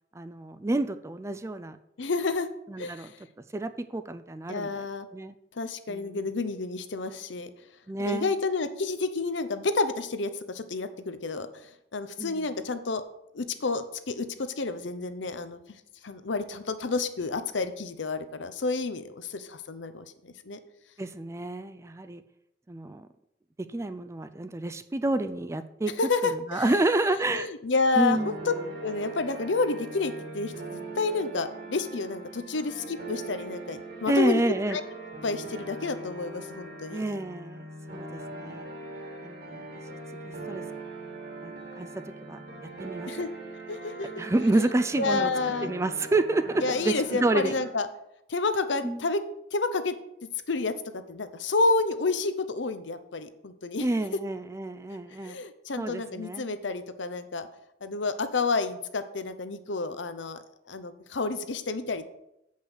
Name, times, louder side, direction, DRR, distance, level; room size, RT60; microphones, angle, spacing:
voice 1, 0.1-1.8 2.7-3.1 3.5-4.9 5.1-5.3 5.9-6.2 7.9-8.3 12.2-12.4 21.0-22.2 22.7-23.1 23.7-25.9 26.3-27.5 28.0-28.4 34.1-34.8 36.9-38.7 39.2-39.6 40.2-40.6 41.4-43.1 44.2-45.3 45.6-47.5 48.8-49.0 53.8-55.4 55.8-56.5, right 2 dB, 15° right, 11 dB, 0.3 m, -29 dB
voice 2, 2.0-2.5 2.8-3.2 4.5-5.1 5.6-7.5 8.1-13.0 13.3-15.6 16.0-20.6 26.0-26.7 27.3-28.5 28.8-34.4 34.7-34.8 35.2-37.0 43.1-43.3 43.7-44.2 45.0-45.7 46.6-47.9 48.3-49.2 49.5-50.0 50.5-53.9 55.2-57.5 57.8-60.4 60.7-62.1, left 3 dB, 75° left, 11 dB, 0.7 m, -30 dB
sound 1, 28.1-47.7, right 2 dB, 55° right, 2.1 m, -41 dB
8.0 x 5.5 x 6.3 m, 0.82 s
head